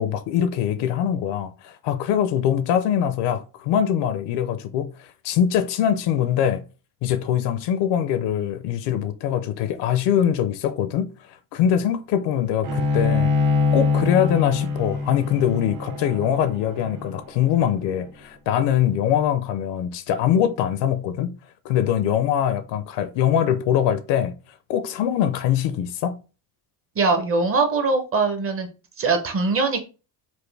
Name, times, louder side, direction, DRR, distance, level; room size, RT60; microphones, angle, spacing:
voice 1, 0.0-6.6 7.0-11.1 11.5-13.3 13.7-21.3 21.6-24.3 24.7-26.1, left 9 dB, 60° left, 0.5 m, -23 dB
Bowed string instrument, 12.6-18.0, left 4 dB, 75° right, 1.8 m, -24 dB
voice 2, 27.0-28.7 29.0-29.9, right 3 dB, 30° right, 0.6 m, -21 dB
4.4 x 2.5 x 3.2 m
cardioid pair, 150°, 49 cm